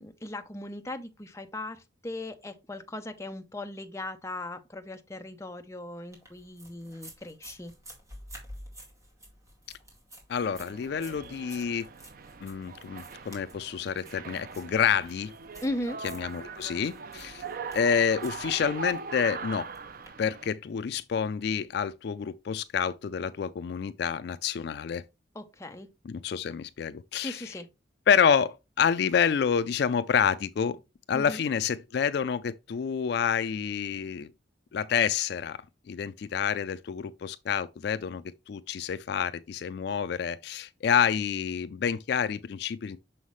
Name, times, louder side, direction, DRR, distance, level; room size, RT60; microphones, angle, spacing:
voice 1, 0.0-7.7 15.6-16.0 25.3-25.9 27.1-27.7 31.1-31.4, left 1 dB, 15° left, 0.6 m, -38 dB
sound 1, 6.1-20.1, equal, 15° right, 2.1 m, -51 dB
voice 2, 10.3-11.9 12.4-15.3 16.1-17.4 17.7-19.7 20.2-25.0 26.1-27.4 28.1-30.8 31.1-34.3 34.7-35.6 35.9-43.0, left 7 dB, 55° left, 0.3 m, -28 dB
sound 2, 10.4-20.5, right 4 dB, 45° right, 0.4 m, -41 dB
6.3 x 5.6 x 3.1 m
head